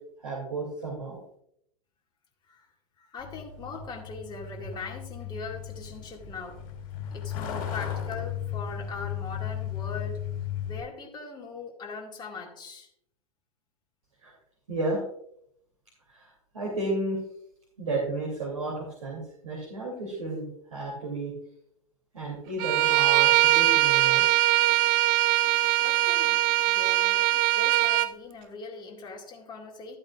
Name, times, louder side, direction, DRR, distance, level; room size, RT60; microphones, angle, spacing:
voice 1, 0.2-1.2 14.2-14.3 14.7-15.0 16.1-17.2 17.8-21.3 22.1-24.3, right 2 dB, 65° right, -2 dB, 2.8 m, -32 dB
voice 2, 2.4-6.7 7.1-10.3 10.6-12.9 25.8-30.0, left 4 dB, 25° left, 1 dB, 2.1 m, -41 dB
Truck, 3.2-10.8, left 9 dB, 45° left, 3.5 m, -35 dB
Bowed string instrument, 22.6-28.1, right 16 dB, 35° right, 0.4 m, -22 dB
13.0 x 8.7 x 2.4 m, 0.72 s
figure-of-eight pair, 95°, 19 cm